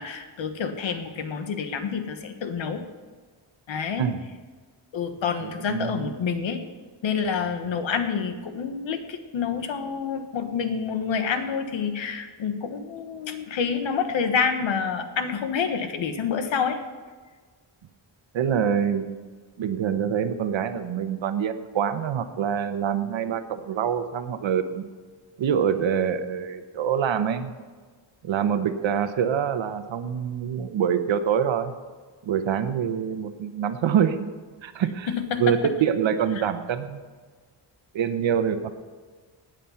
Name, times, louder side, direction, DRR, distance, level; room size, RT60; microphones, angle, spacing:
voice 1, 0.0-2.8 3.7-4.0 4.9-6.6 7.0-16.8 35.1-35.5 36.4-36.5, left 6 dB, 90° left, 7 dB, 1.4 m, -28 dB
voice 2, 5.4-6.2 18.3-19.1 19.6-24.8 25.4-27.5 28.2-31.7 32.2-34.3 34.6-35.1 35.4-37.0 37.9-38.7, right 8 dB, 90° right, 9 dB, 1.1 m, -25 dB
17.0 x 9.1 x 5.7 m, 1.4 s
wide cardioid pair, 175°, 44 cm